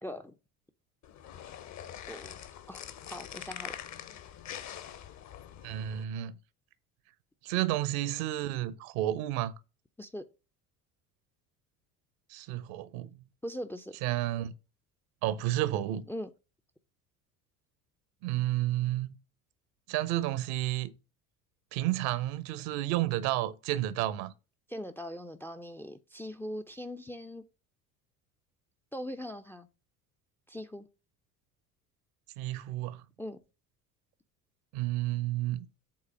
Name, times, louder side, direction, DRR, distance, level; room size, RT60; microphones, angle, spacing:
voice 1, 0.0-0.3 2.1-2.4 2.7-3.8 10.0-10.2 13.4-14.0 16.1-16.3 24.7-27.4 28.9-29.7 30.5-30.9 33.2-33.4, equal, 5° left, 0.5 m, -40 dB
sound 1, 1.0-6.0, left 10 dB, 35° left, 1.0 m, -44 dB
voice 2, 5.6-6.4 7.4-9.5 12.3-13.1 14.0-14.5 15.2-16.1 18.2-19.2 19.9-20.9 21.7-24.3 32.4-33.0 34.7-35.7, right 14 dB, 50° right, 0.8 m, -31 dB
7.8 x 3.9 x 5.9 m
figure-of-eight pair, 65°, 47 cm